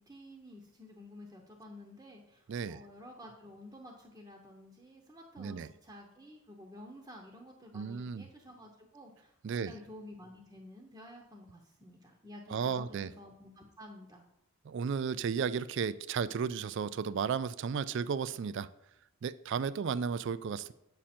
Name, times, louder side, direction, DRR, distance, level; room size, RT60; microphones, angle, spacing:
voice 1, 0.0-14.2, left 1 dB, 15° right, -1 dB, 0.8 m, -51 dB
voice 2, 2.5-2.8 5.4-5.7 7.7-8.2 9.4-9.7 12.5-13.1 14.7-18.7 19.2-20.7, right 6 dB, 55° right, 16 dB, 0.3 m, -34 dB
8.8 x 6.2 x 4.3 m, 0.82 s
head